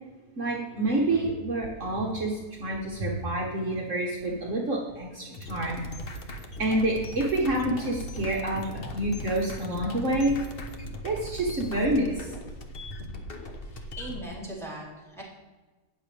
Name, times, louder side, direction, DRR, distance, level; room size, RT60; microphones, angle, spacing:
voice 1, 0.4-5.8 6.6-10.3 11.0-12.2, right 1 dB, 50° right, -2 dB, 1.6 m, -28 dB
sound 1, 5.3-14.2, equal, 40° left, 1.1 m, -39 dB
voice 2, 13.7-15.2, right 1 dB, ahead, -6 dB, 3.2 m, -40 dB
18.0 x 6.7 x 3.4 m, 1.3 s
omnidirectional pair, 1.7 m